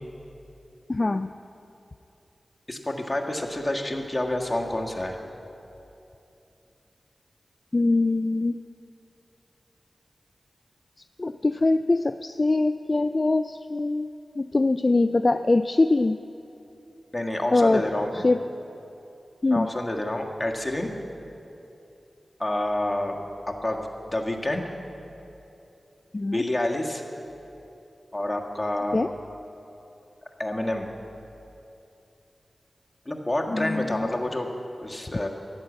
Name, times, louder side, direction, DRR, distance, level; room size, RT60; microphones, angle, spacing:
voice 1, 0.9-1.3 7.7-8.5 11.2-14.1 14.4-16.2 17.5-17.9 18.1-18.4 19.4-19.7 26.1-26.4 28.9-29.1 33.5-34.1, left 2 dB, 40° left, 10 dB, 0.3 m, -23 dB
voice 2, 2.7-5.2 17.1-18.2 19.5-20.9 22.4-23.2 23.5-23.8 24.1-24.6 26.3-27.0 28.1-29.0 30.4-30.9 33.0-34.5 34.8-35.3, left 1 dB, 20° left, 0 dB, 1.7 m, -28 dB
14.0 x 9.7 x 8.1 m, 2.8 s
wide cardioid pair, 60°, 0 cm